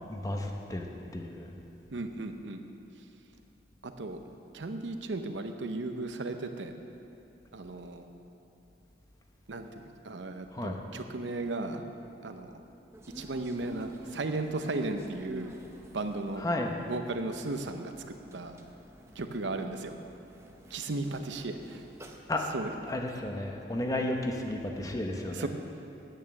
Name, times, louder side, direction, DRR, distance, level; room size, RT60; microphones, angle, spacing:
voice 1, 0.1-0.9 1.1-1.5 10.5-10.8 16.4-16.7 22.3-22.4 22.9-25.5, left 1 dB, 20° left, 2 dB, 0.8 m, -33 dB
voice 2, 1.9-2.6 3.0-3.1 3.8-4.2 4.5-6.7 7.5-8.0 9.5-11.8 12.2-12.6 13.1-15.5 15.9-16.4 16.9-17.9 18.3-18.6 19.1-20.0 20.7-21.9 22.5-22.7 25.3-25.5, right 2 dB, 85° right, 7 dB, 0.8 m, -35 dB
sound 1, 12.9-22.2, equal, 15° right, 0.7 m, -51 dB
9.1 x 9.1 x 7.2 m, 2.8 s
head